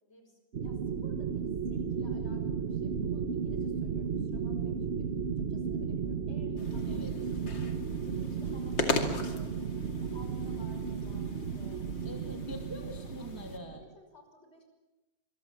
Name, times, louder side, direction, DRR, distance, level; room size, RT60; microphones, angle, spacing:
voice 1, 0.1-7.6 8.1-9.6 10.0-11.8 12.7-13.3 13.8-14.6, equal, 35° left, 4 dB, 6.0 m, -57 dB
sound 1, 0.5-13.9, right 6 dB, 40° right, 1.2 m, -34 dB
sound 2, 6.6-13.6, left 4 dB, 65° left, 3.0 m, -39 dB
voice 2, 12.0-13.8, equal, 10° right, 2 dB, 2.4 m, -44 dB
26.5 x 22.5 x 7.5 m, 1.1 s
omnidirectional pair, 2.1 m